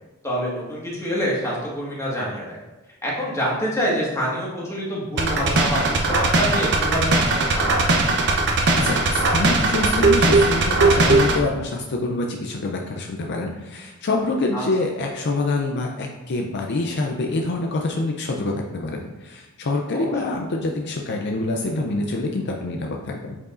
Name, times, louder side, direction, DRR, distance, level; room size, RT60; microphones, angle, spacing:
voice 1, 0.2-2.6 3.0-7.6 14.5-14.6 19.9-20.1, equal, 15° left, -6 dB, 1.7 m, -26 dB
sound 1, 5.2-11.4, right 2 dB, 55° right, 0.8 m, -19 dB
voice 2, 8.8-23.4, left 2 dB, 55° left, 1 dB, 0.5 m, -26 dB
8.3 x 4.7 x 2.5 m, 1.2 s
head